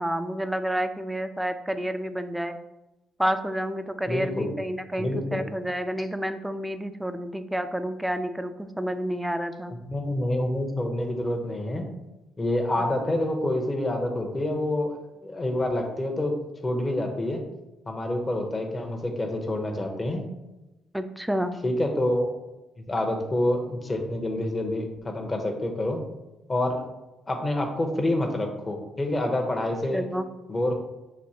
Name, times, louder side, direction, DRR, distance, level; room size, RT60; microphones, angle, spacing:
voice 1, 0.0-2.6 3.2-9.7 20.9-21.6 29.9-30.2, equal, 5° right, 10 dB, 0.3 m, -29 dB
voice 2, 4.1-4.5 5.0-5.4 9.8-11.8 12.4-14.9 15.2-16.3 16.6-17.4 17.9-20.3 21.6-22.3 22.9-26.0 26.5-26.8 27.3-30.0 30.5-30.7, left 1 dB, 25° left, 2 dB, 0.8 m, -27 dB
6.1 x 2.6 x 2.8 m, 1.0 s
cardioid pair, 90°, 0 cm